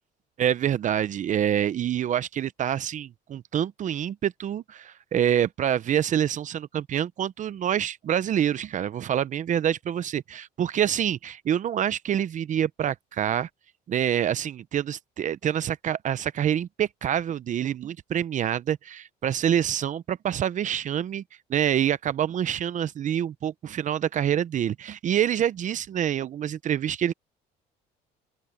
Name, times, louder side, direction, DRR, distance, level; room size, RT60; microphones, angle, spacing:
voice 1, 0.4-13.5 13.9-21.2 21.5-27.1, right 10 dB, 50° right, 0.7 m, -26 dB
open air
cardioid pair, 110°, 17 cm